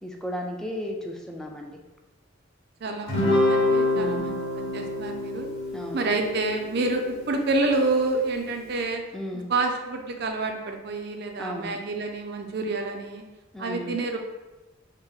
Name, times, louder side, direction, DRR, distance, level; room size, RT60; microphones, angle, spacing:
voice 1, 0.0-1.8 3.9-4.4 5.7-6.1 9.1-9.5 11.4-11.8 13.5-14.0, equal, 5° left, 1 dB, 0.4 m, -34 dB
voice 2, 2.8-5.5 5.9-9.0 9.3-13.2 13.6-14.2, right 3 dB, 55° right, 4 dB, 0.5 m, -28 dB
Guitar, 3.1-7.7, left 2 dB, 85° left, 1.3 m, -26 dB
4.4 x 2.1 x 3.6 m, 1.1 s
head